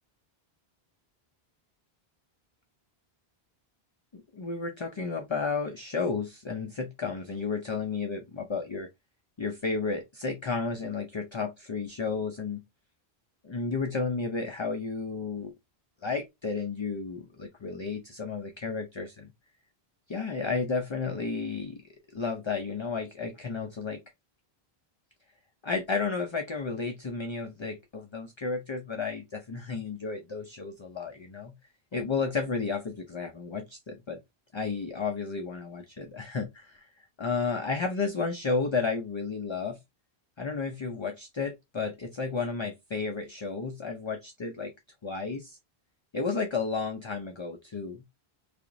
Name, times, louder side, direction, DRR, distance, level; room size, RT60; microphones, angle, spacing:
voice 1, 4.1-8.9 9.4-12.6 13.4-15.5 16.0-19.3 20.1-21.8 22.1-24.0 25.6-31.5 31.9-34.2 34.5-36.9 37.2-39.8 40.4-44.7 45.0-45.6 46.1-48.0, left 4 dB, 40° left, 0.4 m, -32 dB
4.9 x 2.9 x 2.5 m
omnidirectional pair, 1.0 m